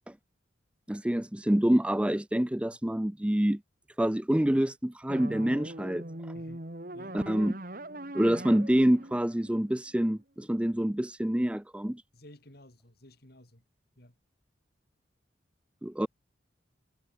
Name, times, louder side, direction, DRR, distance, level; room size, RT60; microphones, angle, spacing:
voice 1, 0.9-3.6 4.0-6.0 7.1-7.5 8.1-12.0 15.8-16.1, right 1 dB, 5° right, 0.4 m, -27 dB
sound 1, 5.1-10.2, right 1 dB, 45° right, 2.9 m, -41 dB
voice 2, 6.3-6.7 6.9-7.2 12.1-13.6 14.0-14.2, left 1 dB, 55° left, 4.1 m, -53 dB
head